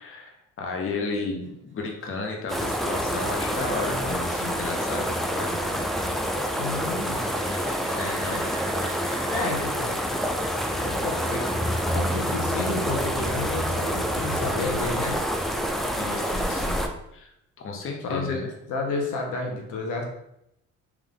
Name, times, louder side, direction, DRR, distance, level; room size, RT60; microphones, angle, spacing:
voice 1, 0.0-6.2 7.9-8.4 10.7-11.0 16.0-16.8 17.1-18.5, left 3 dB, 45° left, 2 dB, 0.9 m, -33 dB
sound 1, 1.2-12.5 18.1-18.2, right 1 dB, 40° right, 1.0 m, -46 dB
sound 2, 2.5-16.9, equal, ahead, 0.4 m, -27 dB
voice 2, 6.6-7.3 9.3-9.9 11.0-11.5 11.9-15.2 18.0-20.0, left 3 dB, 80° left, 1 dB, 1.0 m, -31 dB
3.6 x 3.1 x 3.7 m, 0.79 s
cardioid pair, 90°, 30 cm